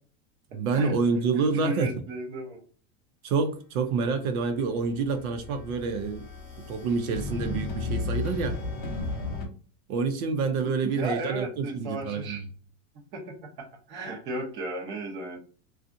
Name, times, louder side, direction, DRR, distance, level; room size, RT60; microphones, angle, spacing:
voice 1, 0.5-1.9 3.2-6.3 6.7-8.6 9.9-12.4, right 4 dB, 80° right, 0.8 m, -27 dB
voice 2, 1.3-2.6 10.8-12.4 13.1-15.4, right 2 dB, 25° right, 0.7 m, -35 dB
sound 1, 4.6-9.5, left 3 dB, 20° left, 0.7 m, -34 dB
2.6 x 2.4 x 2.5 m
supercardioid pair, 165°, 42 cm